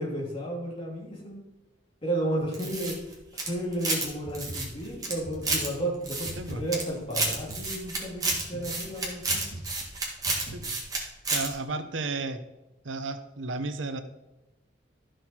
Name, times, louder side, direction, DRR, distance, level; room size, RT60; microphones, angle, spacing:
voice 1, 0.0-1.4 2.0-3.0 3.3-9.4, right 1 dB, 30° left, -3 dB, 2.7 m, -33 dB
sound 1, 2.5-4.1 4.3-5.7 6.0-6.8 7.1-11.0 11.2-11.5, right 3 dB, 20° right, 1.9 m, -30 dB
sound 2, 4.2-11.0, right 1 dB, 90° left, 2.5 m, -43 dB
voice 2, 11.3-12.4 12.8-14.0, right 3 dB, 85° right, 9 dB, 0.9 m, -33 dB
12.5 x 6.3 x 4.4 m, 1.0 s
head